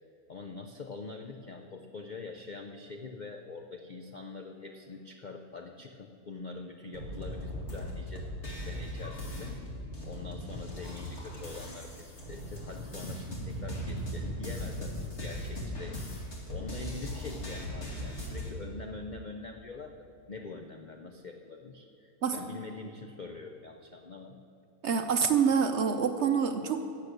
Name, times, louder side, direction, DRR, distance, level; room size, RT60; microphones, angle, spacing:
voice 1, 0.3-9.6 10.0-24.4, left 3 dB, 90° left, 4 dB, 0.4 m, -44 dB
sound 1, 6.9-18.5, equal, 45° left, 2.3 m, -38 dB
voice 2, 24.8-26.8, right 6 dB, 60° right, 7 dB, 0.7 m, -26 dB
15.0 x 8.4 x 6.6 m, 2.6 s
omnidirectional pair, 1.7 m